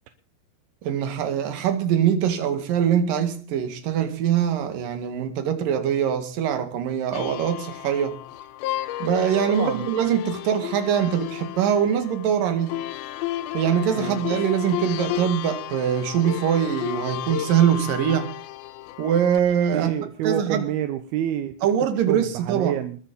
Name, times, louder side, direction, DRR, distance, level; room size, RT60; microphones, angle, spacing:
voice 1, 0.8-8.2 9.0-12.8 13.5-18.3 19.0-19.9 20.2-20.7 21.6-22.8, right 9 dB, 65° right, 3.4 m, -23 dB
sound 1, 7.1-19.4, left 14 dB, 80° left, 2.6 m, -33 dB
voice 2, 9.5-9.9 13.9-14.2 19.7-21.6 22.1-23.0, right 11 dB, 80° right, 2.8 m, -28 dB
21.5 x 9.0 x 5.4 m
omnidirectional pair, 4.6 m